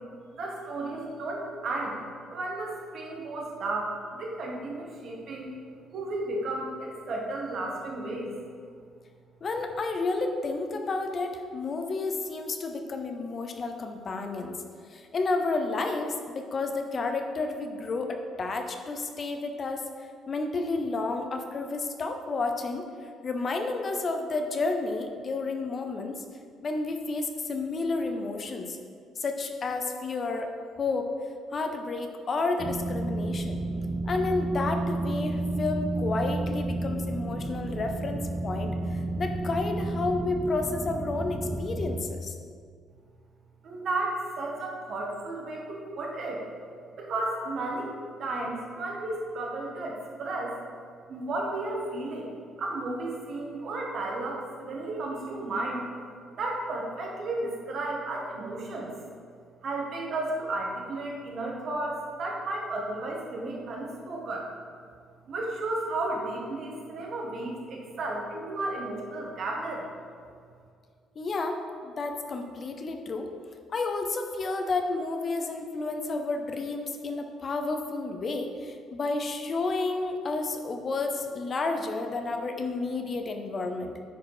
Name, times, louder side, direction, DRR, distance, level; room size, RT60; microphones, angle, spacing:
voice 1, 0.3-2.0 2.3-5.5 5.9-8.3 43.6-46.4 47.0-47.9 48.2-50.6 51.1-52.3 52.6-55.8 56.4-58.9 59.6-64.5 65.3-69.9, right 2 dB, 45° right, -1 dB, 1.6 m, -33 dB
voice 2, 9.4-14.6 14.9-19.8 20.3-26.2 26.6-28.8 29.2-30.5 30.8-31.1 31.5-33.6 34.1-42.3 71.2-73.3 73.7-84.0, left 3 dB, 30° left, 5 dB, 0.6 m, -31 dB
sound 1, 32.6-42.0, right 2 dB, 25° right, 0.7 m, -31 dB
10.0 x 4.8 x 4.9 m, 2.2 s
cardioid pair, 170°, 0 cm